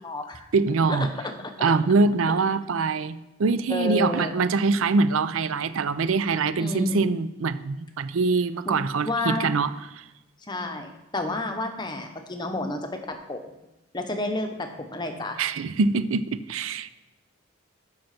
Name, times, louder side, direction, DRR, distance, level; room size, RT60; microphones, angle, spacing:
voice 1, 0.0-0.5 0.9-1.0 3.7-4.3 6.6-7.1 8.7-8.8 9.0-9.6 10.5-13.5 13.9-15.4, left 2 dB, 20° left, 5 dB, 0.9 m, -30 dB
voice 2, 0.5-1.1 1.6-9.7 10.0-10.1 15.4-16.9, right 4 dB, 80° right, 13 dB, 0.5 m, -24 dB
7.7 x 5.7 x 5.9 m, 0.97 s
head